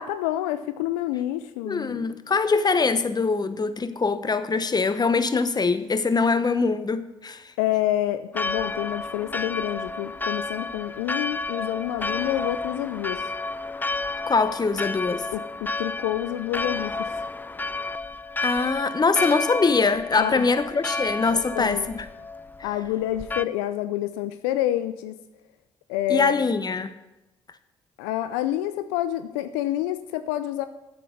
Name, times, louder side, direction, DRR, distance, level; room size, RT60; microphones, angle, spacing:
voice 1, 0.0-2.1 7.6-13.3 15.3-17.3 20.2-20.5 21.3-21.9 22.6-25.2 25.9-26.4 28.0-30.7, left 13 dB, 80° left, 12 dB, 0.4 m, -28 dB
voice 2, 1.7-7.5 14.3-15.3 18.4-22.1 22.6-22.7 26.1-26.9, left 4 dB, 30° left, 12 dB, 0.9 m, -23 dB
Church bell, 8.3-23.5, left 3 dB, 15° left, 0.3 m, -31 dB
8.4 x 7.6 x 6.3 m, 0.98 s
hypercardioid pair, 45°, 14 cm